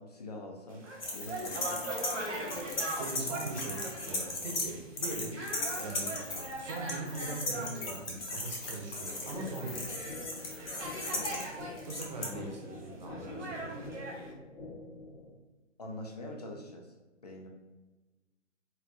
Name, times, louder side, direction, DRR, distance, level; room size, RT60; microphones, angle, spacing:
voice 1, 0.0-1.8 11.1-11.5 15.8-16.9 17.2-17.5, left 1 dB, 35° left, 1 dB, 0.4 m, -44 dB
sound 1, 0.7-14.3, right 1 dB, 70° right, 1.0 m, -41 dB
sound 2, 1.0-4.7 5.0-12.2, left 2 dB, 50° left, 0.8 m, -37 dB
voice 2, 3.0-6.3 6.5-9.9 11.8-13.8, right 3 dB, 35° right, 1 dB, 0.6 m, -41 dB
sound 3, 9.3-15.3, left 2 dB, 75° left, 1.0 m, -47 dB
4.4 x 2.4 x 2.3 m, 1.2 s
figure-of-eight pair, 135°, 37 cm